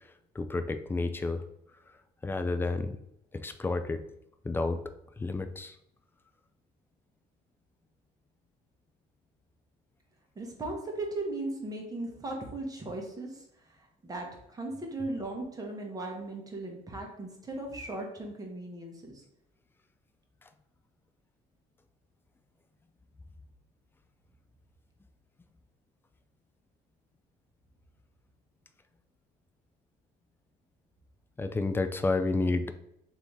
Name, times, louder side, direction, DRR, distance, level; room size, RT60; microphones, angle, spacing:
voice 1, 0.3-1.4 2.2-3.0 3.3-4.0 4.4-4.8 5.2-5.8 31.4-32.7, left 3 dB, 15° left, 9 dB, 0.4 m, -30 dB
voice 2, 10.3-13.4 14.0-19.2, right 2 dB, 20° right, 1 dB, 1.1 m, -37 dB
3.4 x 2.7 x 4.5 m, 0.77 s
cardioid pair, 110°, 17 cm